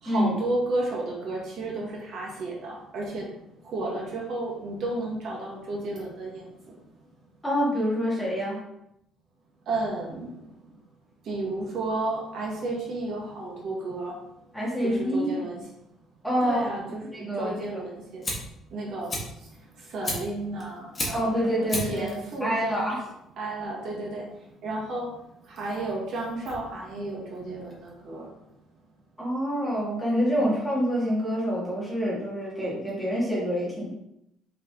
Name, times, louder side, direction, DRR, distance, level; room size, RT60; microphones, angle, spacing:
voice 1, 0.0-3.3 3.6-6.7 9.7-10.4 11.2-14.2 14.8-15.6 16.4-18.2 18.7-19.5 19.8-21.3 21.9-22.9 23.4-24.3 24.6-25.1 25.4-28.3 30.4-30.5, right 2 dB, 50° right, -3 dB, 2.0 m, -32 dB
voice 2, 7.4-8.6 14.5-15.5 16.2-16.6 17.1-17.6 21.1-22.1 22.4-23.0 29.2-33.9, equal, 5° left, -6 dB, 1.9 m, -26 dB
Fire, 17.8-28.3, left 1 dB, 20° left, 1.6 m, -37 dB
5.9 x 4.8 x 4.0 m, 0.80 s
cardioid pair, 180°, 0 cm